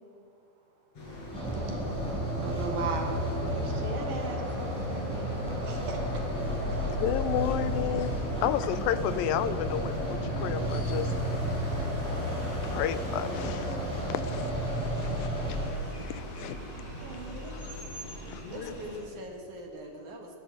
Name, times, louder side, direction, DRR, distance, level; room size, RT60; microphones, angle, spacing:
sound 1, 1.0-19.0, equal, 45° left, 6.7 m, -40 dB
sound 2, 1.3-15.7, equal, ahead, 6.6 m, -32 dB
voice 1, 2.4-3.1 3.4-6.0 15.0-15.5 17.0-17.5, right 4 dB, 80° right, 2 dB, 4.0 m, -38 dB
voice 2, 6.9-11.1 12.6-16.6 17.5-17.8 18.3-18.7, left 11 dB, 90° left, 12 dB, 2.5 m, -33 dB
voice 3, 18.5-20.4, right 1 dB, 60° right, 2 dB, 3.4 m, -42 dB
28.0 x 13.0 x 8.0 m, 2.4 s
omnidirectional pair, 3.9 m